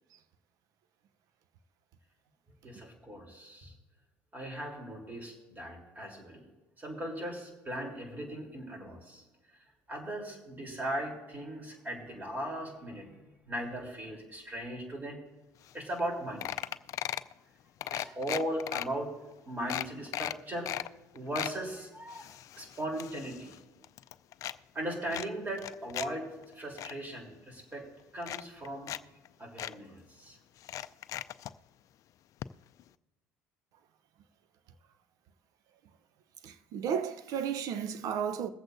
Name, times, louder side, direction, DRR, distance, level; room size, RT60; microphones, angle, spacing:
voice 1, 2.6-3.7 4.3-6.4 6.8-9.2 9.5-15.2 15.7-16.6 17.8-19.1 19.5-20.7 21.1-23.5 24.7-27.9 28.1-28.9 29.4-30.4, right 1 dB, 25° right, 3.5 m, -38 dB
sound 1, 15.7-15.8 16.0-16.1 16.4-17.3 17.8-18.9 19.3-19.4 19.7-20.9 21.2-21.6 22.1-23.6 23.8-24.6 25.1-26.1 26.4-26.9 27.7-27.8 28.2-29.0 29.3-29.4 29.6-29.7 30.6-31.5 32.4-32.5 32.8-32.9, left 12 dB, 55° left, 0.4 m, -37 dB
voice 2, 36.4-38.5, right 8 dB, 65° right, 0.8 m, -33 dB
22.5 x 7.9 x 2.7 m
supercardioid pair, 80°, 6 cm